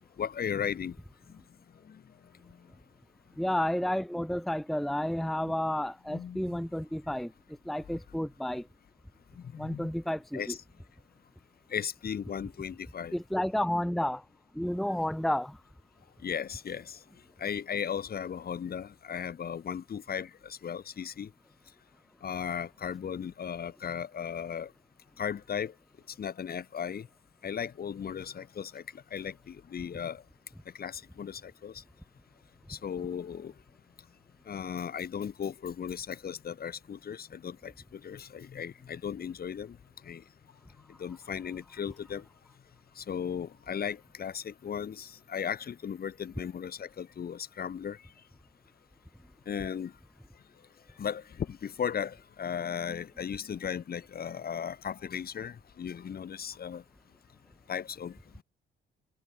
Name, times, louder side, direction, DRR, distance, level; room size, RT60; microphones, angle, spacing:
voice 1, 0.2-1.0 1.3-1.4 1.7-2.1 2.4-2.7 5.4-5.5 6.1-6.6 9.3-9.9 10.3-10.6 11.7-13.2 16.2-17.0 17.4-21.3 22.2-24.7 25.2-25.7 26.1-27.1 27.4-30.2 30.7-31.8 32.7-33.5 34.5-39.8 40.0-40.2 40.9-42.3 42.9-48.1 49.5-49.9 51.0-56.8 57.7-58.4, left 8 dB, 50° left, 2.6 m, -36 dB
voice 2, 3.4-7.3 7.6-8.7 9.6-10.5 13.1-14.2 14.5-15.6, left 1 dB, ahead, 0.8 m, -31 dB
cardioid pair, 90°, 20 cm